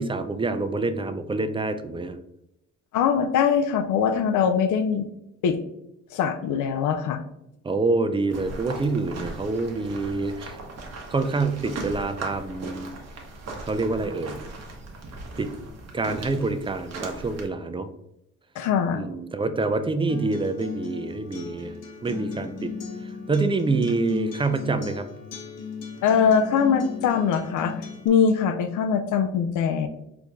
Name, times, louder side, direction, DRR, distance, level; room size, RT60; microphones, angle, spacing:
voice 1, 0.0-2.2 7.6-10.6 11.1-12.9 13.6-14.4 15.4-15.5 15.9-17.9 18.9-21.7 22.0-22.7 23.3-25.1, right 3 dB, 20° right, 10 dB, 0.3 m, -26 dB
voice 2, 2.9-5.1 5.4-5.6 6.1-7.2 18.6-19.0 26.0-27.7 28.0-29.9, left 7 dB, 75° left, 8 dB, 0.5 m, -22 dB
sound 1, 8.3-17.5, right 3 dB, 60° right, 1.1 m, -38 dB
Acoustic guitar, 20.1-28.1, left 5 dB, 55° left, 0.9 m, -36 dB
4.6 x 2.6 x 3.5 m, 0.84 s
cardioid pair, 90°, 30 cm